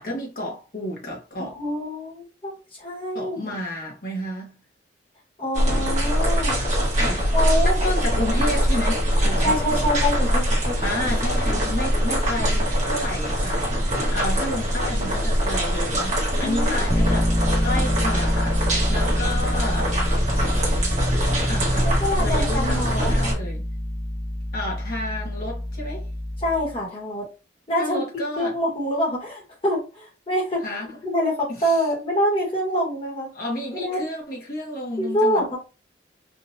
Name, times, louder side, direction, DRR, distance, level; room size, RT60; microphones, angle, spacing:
voice 1, 0.0-1.6 3.1-4.5 7.0-7.3 7.6-9.6 10.8-13.9 14.1-17.3 17.6-20.0 20.4-20.5 21.5-23.6 24.5-26.1 27.8-28.6 30.6-30.9 31.5-31.8 33.3-35.6, left 1 dB, 50° left, 1.3 m, -31 dB
voice 2, 1.4-3.6 5.4-6.6 7.3-7.7 9.4-10.8 16.4-16.7 21.8-23.1 26.4-27.2 27.7-28.0 28.4-30.6 31.0-33.3 33.7-34.0 35.0-35.6, equal, 30° left, 1.5 m, -25 dB
sound 1, 5.5-23.3, equal, 40° right, 1.5 m, -23 dB
Bass guitar, 16.9-26.8, left 1 dB, 10° left, 0.4 m, -27 dB
3.7 x 2.6 x 2.7 m
head